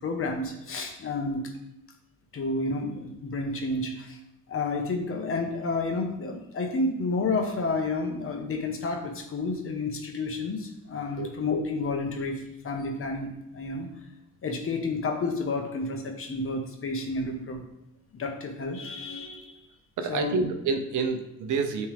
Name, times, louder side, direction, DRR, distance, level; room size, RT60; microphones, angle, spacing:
voice 1, 0.0-1.5 2.3-4.2 4.5-13.9 14.4-17.6 18.2-19.6 20.1-20.5, left 3 dB, 45° left, 3 dB, 1.2 m, -30 dB
voice 2, 20.0-21.9, right 4 dB, 80° right, 6 dB, 0.8 m, -28 dB
8.9 x 3.5 x 3.4 m, 0.86 s
cardioid pair, 90°, 30 cm